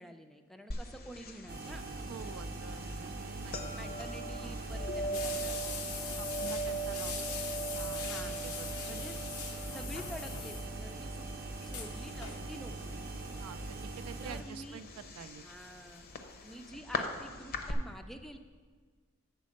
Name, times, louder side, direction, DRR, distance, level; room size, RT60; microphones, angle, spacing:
voice 1, 0.0-1.9 3.7-6.6 7.1-7.3 7.9-8.5 8.9-9.2 9.7-11.3 11.6-13.1 14.2-14.8 15.4-16.1 16.4-18.4, equal, ahead, 7 dB, 0.3 m, -48 dB
sound 1, 0.7-17.7, right 1 dB, 45° left, 0.6 m, -42 dB
sound 2, 1.5-14.4, right 2 dB, 45° right, 0.6 m, -42 dB
voice 2, 2.1-4.0 4.4-4.6 6.2-7.2 7.7-8.1 8.4-9.1 9.7-9.9 13.4-15.5, right 7 dB, 90° right, 13 dB, 0.3 m, -48 dB
sound 3, 5.1-11.0 11.3-11.4 11.6-12.5 13.5-13.8 14.4-15.7 15.9-16.0 16.5-16.6, left 7 dB, 90° left, 0.7 m, -42 dB
8.2 x 4.2 x 6.4 m, 1.5 s
head